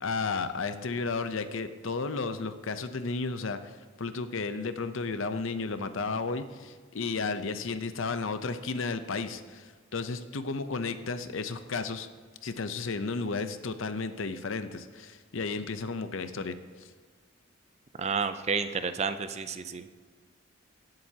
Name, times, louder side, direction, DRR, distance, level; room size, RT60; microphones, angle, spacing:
voice 1, 0.0-12.1 12.4-16.9, left 4 dB, 65° left, 10 dB, 0.7 m, -33 dB
voice 2, 18.0-19.9, right 5 dB, 30° right, 11 dB, 0.4 m, -30 dB
17.5 x 7.8 x 2.8 m, 1.5 s
head